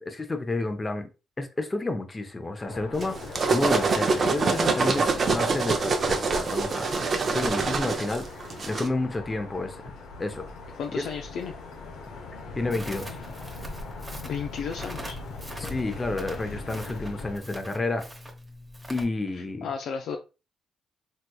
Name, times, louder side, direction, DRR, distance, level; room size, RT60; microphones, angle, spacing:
voice 1, 0.0-1.1 1.4-6.9 7.3-9.9 10.2-10.5 10.9-11.1 12.6-13.2 15.6-18.0 18.9-19.7, left 2 dB, 20° left, 0.6 m, -30 dB
sound 1, 2.6-17.4, left 3 dB, 85° left, 0.8 m, -41 dB
sound 2, 3.0-8.9, right 4 dB, 45° right, 0.6 m, -25 dB
voice 2, 10.8-11.6 14.2-15.2 19.6-20.2, left 6 dB, 70° left, 0.4 m, -33 dB
Crackle, 12.7-19.0, equal, 15° right, 0.9 m, -43 dB
3.3 x 2.9 x 2.3 m
cardioid pair, 90°, 0 cm